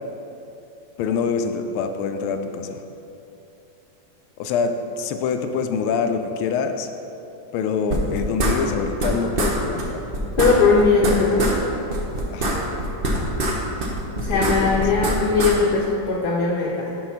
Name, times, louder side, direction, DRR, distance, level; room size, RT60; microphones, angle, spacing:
voice 1, 1.0-2.8 4.4-6.9 7.5-10.0 12.3-12.6 14.4-14.8, left 5 dB, 85° left, 7 dB, 1.4 m, -25 dB
sound 1, 7.9-9.1 9.4-9.5 9.8-9.9 10.1-11.6 11.9-13.6 13.8-15.5, right 1 dB, 80° right, 0.5 m, -23 dB
voice 2, 10.4-11.5 14.2-17.0, left 4 dB, 65° left, -2 dB, 1.1 m, -19 dB
6.1 x 5.5 x 5.7 m, 2.9 s
omnidirectional pair, 2.3 m